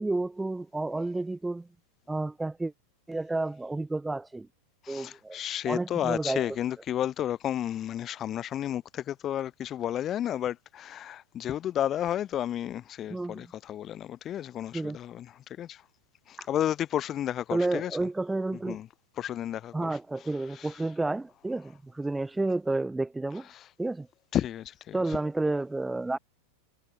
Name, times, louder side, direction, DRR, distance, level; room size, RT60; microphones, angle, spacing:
voice 1, 0.0-1.7 2.1-2.7 3.1-4.5 4.9-5.4 5.7-6.6 13.1-13.5 14.7-15.0 16.4-16.5 17.5-18.8 19.7-23.5 23.8-24.1 24.9-26.2, right 2 dB, 5° right, 0.7 m, -31 dB
voice 2, 4.8-15.8 16.3-18.0 18.7-18.9 19.2-20.0 20.5-20.7 23.5-23.6 24.3-25.2, left 11 dB, 30° left, 0.4 m, -32 dB
figure-of-eight pair, 90°, 0 cm